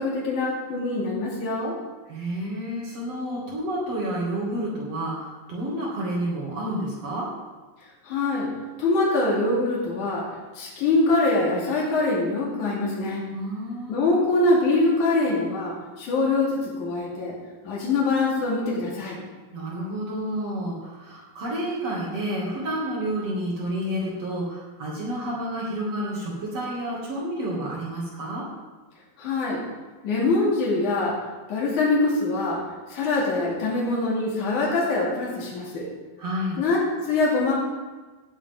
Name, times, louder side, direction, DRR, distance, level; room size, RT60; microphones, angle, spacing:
voice 1, 0.0-1.8 8.0-8.5 8.8-10.3 10.6-13.3 13.9-17.3 17.6-19.2 29.2-29.6 30.0-31.2 31.5-32.6 32.9-35.9 36.6-37.5, left 2 dB, 60° left, -5 dB, 3.8 m, -24 dB
voice 2, 2.1-7.3 13.3-14.0 19.5-28.5 36.2-36.6, right 1 dB, 50° right, -5 dB, 3.4 m, -30 dB
18.5 x 8.3 x 3.8 m, 1.3 s
omnidirectional pair, 4.0 m